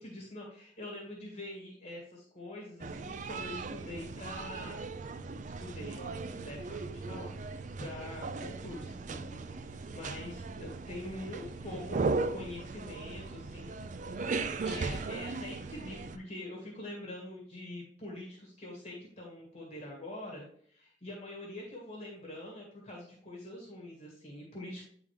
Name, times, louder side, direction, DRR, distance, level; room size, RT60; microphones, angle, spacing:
voice 1, 0.0-4.9 5.4-9.4 9.6-12.0 12.3-13.7 14.6-24.8, left 1 dB, 35° left, -2 dB, 1.5 m, -44 dB
sound 1, 2.8-16.2, right 3 dB, 40° right, 0.4 m, -37 dB
9.1 x 3.7 x 3.2 m, 0.63 s
head